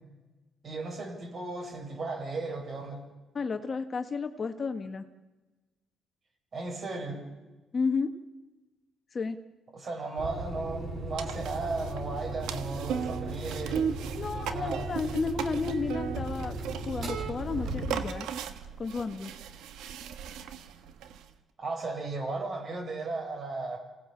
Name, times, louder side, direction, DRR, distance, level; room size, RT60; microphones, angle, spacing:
voice 1, 0.6-3.0 6.5-7.2 9.7-13.9 14.5-14.9 21.6-23.8, right 3 dB, 45° right, 1 dB, 7.3 m, -35 dB
voice 2, 3.3-5.0 7.7-8.1 9.1-9.4 14.2-16.5 16.8-18.3 18.8-19.3, left 4 dB, 40° left, 7 dB, 1.5 m, -32 dB
sound 1, 10.2-18.2, right 2 dB, 65° right, 7.4 m, -37 dB
sound 2, 11.2-21.3, right 8 dB, 90° right, 1.4 m, -37 dB
27.5 x 18.0 x 7.2 m, 1.2 s
cardioid pair, 90°, 0 cm